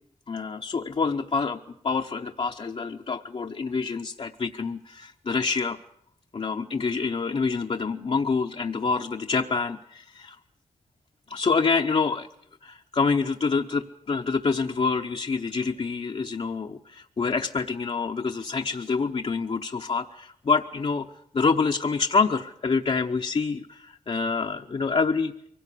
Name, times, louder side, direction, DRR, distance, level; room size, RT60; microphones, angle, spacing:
voice 1, 0.3-5.8 6.3-10.4 11.3-12.3 12.6-21.1 21.3-25.3, left 4 dB, 50° left, 2 dB, 0.9 m, -27 dB
24.0 x 17.0 x 8.5 m, 0.72 s
wide cardioid pair, 115°, 13 cm